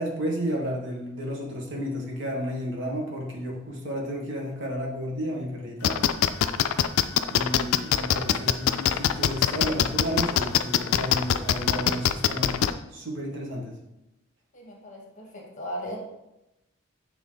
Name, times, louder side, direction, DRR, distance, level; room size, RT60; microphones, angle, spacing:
voice 1, 0.0-6.0 7.3-12.5 12.9-13.8, equal, 60° right, -1 dB, 1.6 m, -32 dB
sound 1, 5.8-12.7, left 9 dB, 70° left, 0.3 m, -22 dB
voice 2, 14.5-16.0, equal, 35° left, -1 dB, 1.4 m, -37 dB
8.7 x 3.3 x 3.9 m, 0.91 s
head